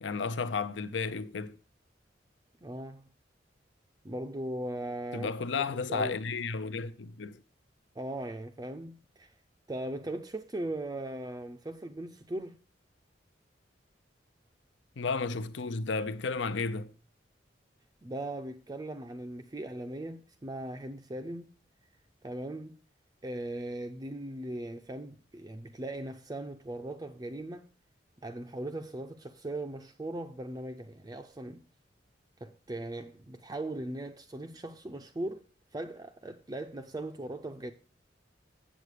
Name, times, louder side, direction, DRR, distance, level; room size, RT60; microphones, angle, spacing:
voice 1, 0.0-1.6 5.1-7.4 15.0-16.9, left 4 dB, 80° left, 0.6 m, -33 dB
voice 2, 2.6-3.1 4.0-6.2 8.0-9.3 9.7-12.6 18.0-21.5 22.2-22.8 23.2-27.7 28.2-31.6 32.4-35.4 35.7-37.7, right 1 dB, 20° right, 0.4 m, -39 dB
8.1 x 7.6 x 4.9 m
head